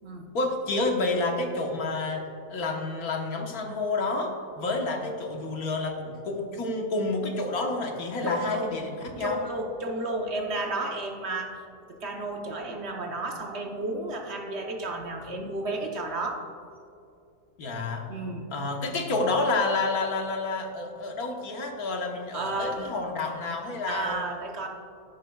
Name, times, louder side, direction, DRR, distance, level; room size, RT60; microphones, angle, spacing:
voice 1, 0.3-9.4 17.6-18.1 18.5-24.2, left 3 dB, 85° left, 2 dB, 1.7 m, -29 dB
voice 2, 8.2-8.7 9.2-11.6 11.9-16.4 18.1-18.5 22.3-22.9 23.9-24.7, right 2 dB, 50° right, 2 dB, 1.1 m, -32 dB
13.5 x 11.0 x 2.3 m, 2.6 s
omnidirectional pair, 1.5 m